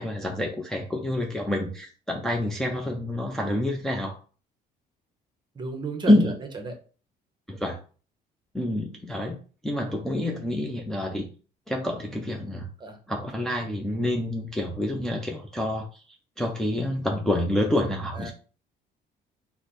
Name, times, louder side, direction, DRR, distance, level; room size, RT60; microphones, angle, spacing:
voice 1, 0.0-4.1 6.1-6.4 7.5-7.8 8.5-9.4 9.6-11.3 11.7-12.7 13.1-15.9 16.4-18.3, left 1 dB, 5° left, 0 dB, 0.5 m, -27 dB
voice 2, 5.6-6.3 6.6-6.7 12.8-13.0 18.1-18.3, right 3 dB, 25° right, 5 dB, 0.8 m, -33 dB
3.2 x 2.0 x 4.2 m, 0.38 s
cardioid pair, 110°, 17 cm